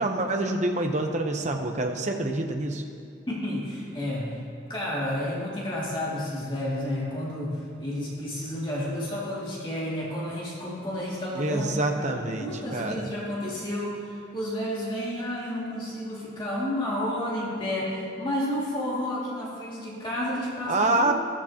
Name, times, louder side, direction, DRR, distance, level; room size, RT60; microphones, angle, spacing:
voice 1, 0.0-2.8 11.3-13.1 20.7-21.1, right 2 dB, 40° right, 3 dB, 0.9 m, -26 dB
voice 2, 3.3-4.4 4.7-21.1, left 1 dB, 25° left, -6 dB, 2.4 m, -31 dB
14.5 x 13.0 x 2.9 m, 2.6 s
head